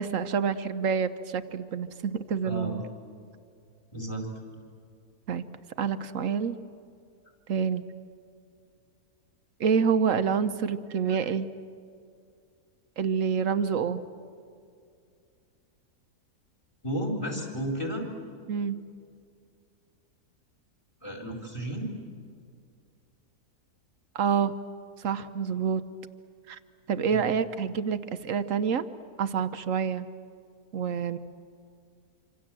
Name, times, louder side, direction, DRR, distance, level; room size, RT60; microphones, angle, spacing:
voice 1, 0.0-2.8 5.3-5.4 5.8-6.6 7.5-7.8 9.6-11.5 13.0-14.0 18.5-18.8 24.1-24.5 25.0-25.8 26.5-26.6 26.9-28.8 29.2-30.1 30.7-31.2, right 6 dB, 60° right, 10 dB, 1.1 m, -27 dB
voice 2, 2.4-2.8 3.9-4.3 16.8-18.0 21.0-21.9 27.1-27.3, equal, 20° left, 2 dB, 4.2 m, -33 dB
26.5 x 26.0 x 7.6 m, 2.3 s
omnidirectional pair, 1.7 m